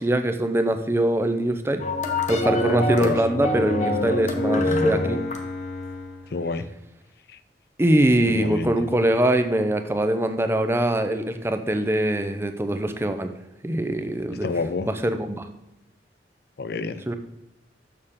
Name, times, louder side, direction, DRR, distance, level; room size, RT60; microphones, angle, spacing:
voice 1, 0.0-1.8 2.3-5.2 7.8-13.3 13.6-15.5 17.1-17.2, right 1 dB, 15° right, 8 dB, 0.5 m, -23 dB
sound 1, 1.8-6.2, left 1 dB, 40° left, 0.8 m, -25 dB
voice 2, 6.3-6.7 8.3-8.7 14.4-14.9 16.6-17.0, left 3 dB, 60° left, 13 dB, 0.4 m, -28 dB
6.7 x 6.5 x 3.6 m, 0.92 s
head